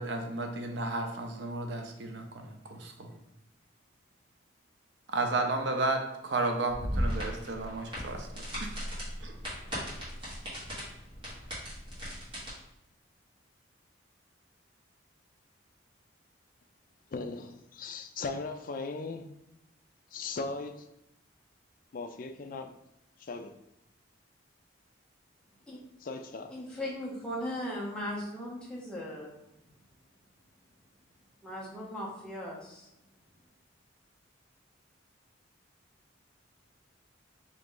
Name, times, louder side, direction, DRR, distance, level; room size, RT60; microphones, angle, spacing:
voice 1, 0.0-3.2 5.1-8.3 8.6-8.7 9.2-9.3, right 2 dB, 60° right, 0.6 m, -33 dB
sound 1, 6.7-12.5, equal, 25° right, 1.5 m, -37 dB
voice 2, 17.1-19.3 20.1-20.9 21.9-22.7 23.2-23.5 26.0-26.5, left 3 dB, 45° left, 0.4 m, -38 dB
voice 3, 26.5-29.3 31.4-32.9, left 1 dB, 5° left, 0.9 m, -38 dB
3.8 x 2.9 x 3.7 m
head